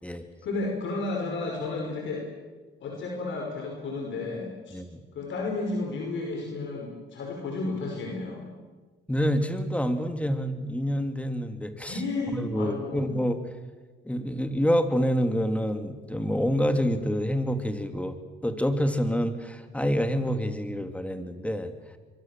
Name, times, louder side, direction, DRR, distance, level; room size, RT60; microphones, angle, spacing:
voice 1, 0.4-2.3 2.8-4.8 5.1-8.4 11.9-13.1, left 3 dB, 70° left, 1 dB, 5.5 m, -32 dB
voice 2, 9.1-12.0 12.3-13.4 14.0-18.2 18.4-21.7, equal, 5° left, 7 dB, 2.6 m, -27 dB
24.5 x 23.5 x 7.5 m, 1.3 s
cardioid pair, 90°, 20 cm